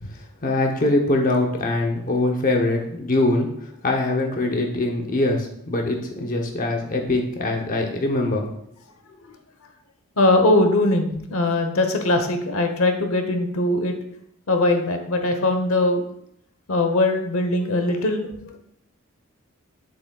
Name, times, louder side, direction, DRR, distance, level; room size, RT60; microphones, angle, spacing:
voice 1, 0.2-8.5, left 2 dB, 35° left, 2 dB, 0.8 m, -23 dB
voice 2, 10.2-13.9 14.5-16.0 16.7-18.6, left 2 dB, 70° left, 5 dB, 0.9 m, -21 dB
7.8 x 7.2 x 2.3 m, 0.73 s
head